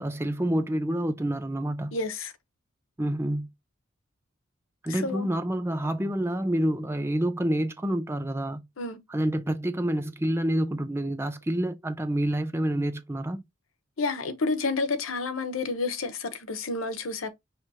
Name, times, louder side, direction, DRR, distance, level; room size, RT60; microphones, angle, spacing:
voice 1, 0.0-1.9 3.0-3.5 4.8-8.6 9.1-13.4, right 1 dB, 10° right, 0.5 m, -28 dB
voice 2, 1.9-2.3 4.9-5.3 8.8-9.0 14.0-17.3, left 3 dB, 85° left, 0.9 m, -30 dB
6.0 x 3.2 x 2.8 m
head